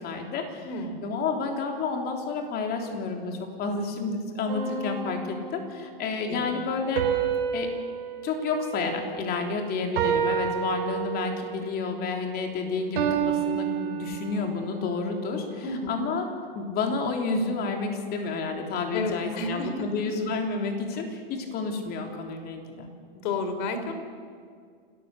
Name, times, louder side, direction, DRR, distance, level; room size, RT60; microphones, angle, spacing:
voice 1, 0.0-0.7 1.0-7.1 7.5-7.7 8.2-16.2 16.5-22.9, left 4 dB, 30° left, 3 dB, 3.5 m, -30 dB
voice 2, 0.6-1.0 6.3-6.6 15.6-16.0 18.9-19.9 23.1-23.9, left 2 dB, 50° left, 7 dB, 3.5 m, -31 dB
sound 1, 4.5-5.9 7.0-9.4 10.0-11.5 13.0-14.6, right 8 dB, 65° right, 3.7 m, -29 dB
29.5 x 14.0 x 6.7 m, 2.1 s
hypercardioid pair, 125°, 30 cm